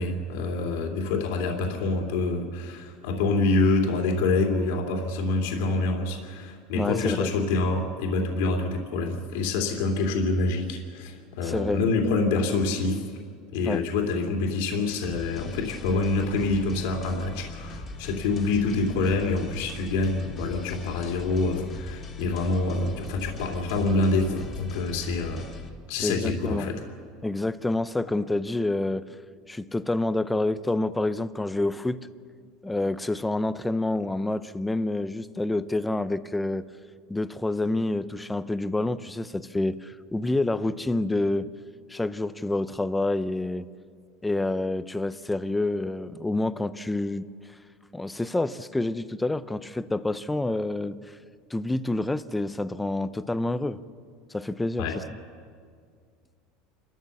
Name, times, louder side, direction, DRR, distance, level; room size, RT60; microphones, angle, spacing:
voice 1, 0.0-13.0 13.5-25.5 25.9-26.7 54.8-54.9, left 3 dB, 75° left, 2 dB, 2.6 m, -26 dB
voice 2, 6.7-7.3 11.4-11.8 13.6-13.8 26.0-26.7 27.2-29.1 29.5-32.0 32.6-36.6 37.1-41.5 41.9-43.7 44.2-47.3 47.9-51.0 51.5-53.8 54.3-55.0, left 2 dB, 5° left, 14 dB, 0.6 m, -28 dB
sound 1, 15.0-25.7, left 3 dB, 25° left, 1.9 m, -40 dB
29.5 x 13.5 x 7.2 m, 2.1 s
supercardioid pair, 155°, 0 cm